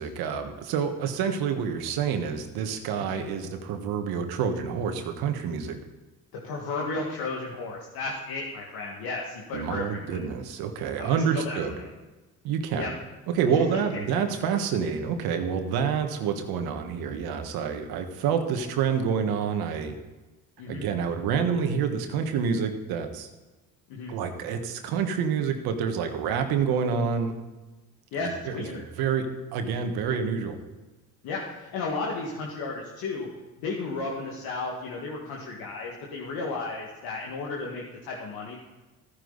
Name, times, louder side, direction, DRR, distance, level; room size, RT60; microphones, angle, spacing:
voice 1, 0.0-5.8 9.5-11.7 12.4-12.9 13.3-19.9 20.7-23.3 24.1-27.4 28.2-29.3 29.5-30.6, right 6 dB, 80° right, 6 dB, 1.5 m, -28 dB
voice 2, 6.4-10.2 11.0-11.9 12.7-12.9 13.5-14.0 20.6-20.9 23.9-24.1 28.1-28.8 31.2-33.3 33.6-38.6, left 3 dB, 75° left, -3 dB, 2.0 m, -34 dB
13.5 x 9.9 x 4.0 m, 1.2 s
supercardioid pair, 75°, 37 cm